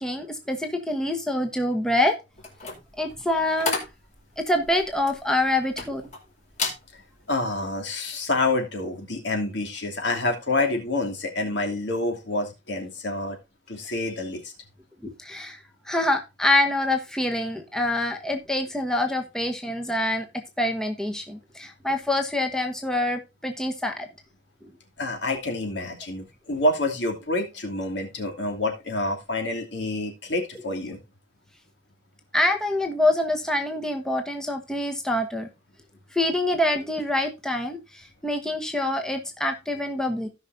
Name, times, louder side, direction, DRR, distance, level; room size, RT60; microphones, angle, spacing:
voice 1, 0.0-2.1 3.0-3.8 4.4-6.0 15.2-15.6 15.9-20.3 20.6-24.1 32.3-35.5 36.1-40.3, left 1 dB, 5° left, 4 dB, 1.0 m, -25 dB
sound 1, 2.4-6.2 6.5-6.8 7.3-7.6, left 3 dB, 40° left, 3.1 m, -32 dB
voice 2, 7.3-13.4 13.7-14.5 25.0-31.0, left 2 dB, 65° left, 3 dB, 2.8 m, -27 dB
16.5 x 5.8 x 2.7 m, 0.26 s
head